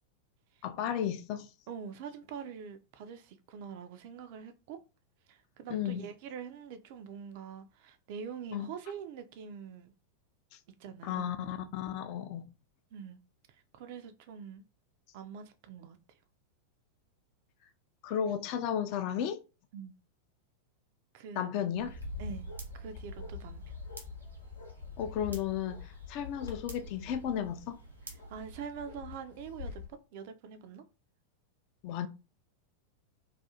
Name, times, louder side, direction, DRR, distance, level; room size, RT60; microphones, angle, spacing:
voice 1, 0.6-1.5 5.7-6.1 8.5-8.7 11.0-12.5 18.0-19.4 21.4-22.0 25.0-27.8 31.8-32.1, left 9 dB, 45° left, 0.3 m, -34 dB
voice 2, 1.7-4.8 5.3-9.9 10.8-11.3 12.9-13.2 13.5-14.6 15.1-16.0 19.7-19.9 21.1-21.5 22.2-22.5 22.7-23.8 28.3-30.8, right 7 dB, 50° right, 0.3 m, -44 dB
sound 1, 21.7-28.6, right 4 dB, 80° right, 0.7 m, -48 dB
Bark, 22.0-29.9, left 7 dB, 80° left, 0.7 m, -46 dB
2.4 x 2.3 x 2.7 m
figure-of-eight pair, 90°, 0 cm